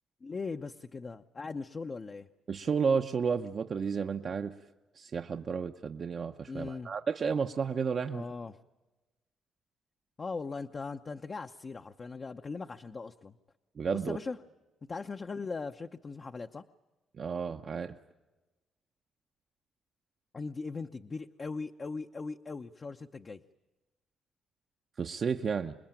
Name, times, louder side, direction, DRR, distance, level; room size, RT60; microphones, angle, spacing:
voice 1, 0.2-2.3 6.5-6.9 8.1-8.6 10.2-13.4 14.1-14.4 14.9-16.6 20.3-23.4, left 4 dB, 35° left, 6 dB, 0.8 m, -39 dB
voice 2, 2.5-4.6 4.9-8.3 13.8-14.2 17.1-18.0 25.0-25.7, right 6 dB, 50° right, 5 dB, 0.8 m, -32 dB
27.0 x 21.0 x 9.0 m, 1.1 s
cardioid pair, 90°, 0 cm